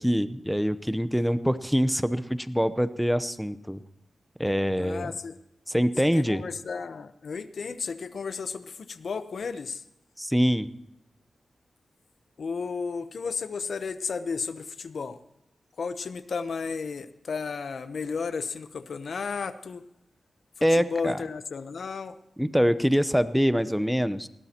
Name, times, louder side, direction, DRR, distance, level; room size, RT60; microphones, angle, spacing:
voice 1, 0.0-3.8 4.4-5.1 5.7-6.4 10.2-10.7 20.6-21.2 22.4-24.3, equal, ahead, 13 dB, 0.8 m, -24 dB
voice 2, 4.8-5.3 6.1-9.8 12.4-15.2 15.8-19.8 20.7-22.2, left 5 dB, 70° left, 12 dB, 0.8 m, -33 dB
20.5 x 17.0 x 2.9 m, 0.80 s
cardioid pair, 75°, 0 cm